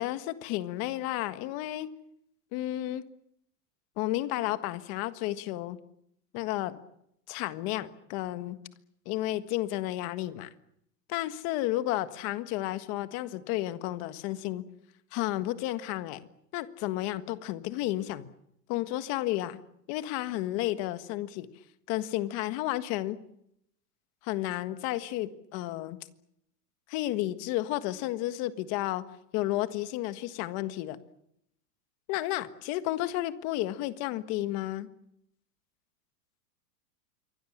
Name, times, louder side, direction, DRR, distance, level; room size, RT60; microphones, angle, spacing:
voice 1, 0.0-1.9 2.5-3.1 4.0-5.8 6.3-6.8 7.3-8.6 9.0-10.5 11.1-14.6 15.1-16.3 16.5-18.3 18.7-19.6 19.9-21.5 21.9-23.2 24.2-26.0 26.9-29.0 29.3-31.0 32.1-34.9, left 15 dB, 35° left, 12 dB, 1.6 m, -32 dB
27.5 x 24.0 x 7.4 m, 0.75 s
supercardioid pair, 170°, 48 cm